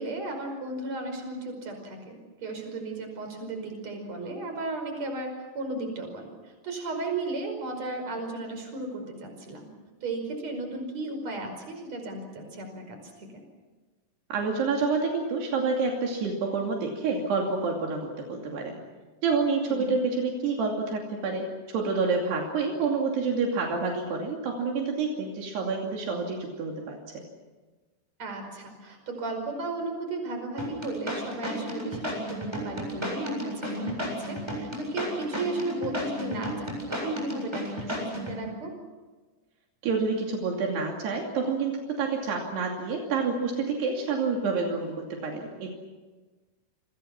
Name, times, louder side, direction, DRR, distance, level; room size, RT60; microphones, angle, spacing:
voice 1, 0.0-6.3 6.6-9.7 10.0-13.4 19.6-19.9 28.2-38.7, right 2 dB, 40° right, 5 dB, 6.2 m, -35 dB
voice 2, 14.3-18.8 19.2-27.2 39.8-45.7, right 4 dB, 75° right, 0 dB, 4.7 m, -28 dB
sound 1, 30.6-38.4, equal, 5° right, 7.4 m, -33 dB
29.0 x 25.5 x 6.0 m, 1.3 s
omnidirectional pair, 4.9 m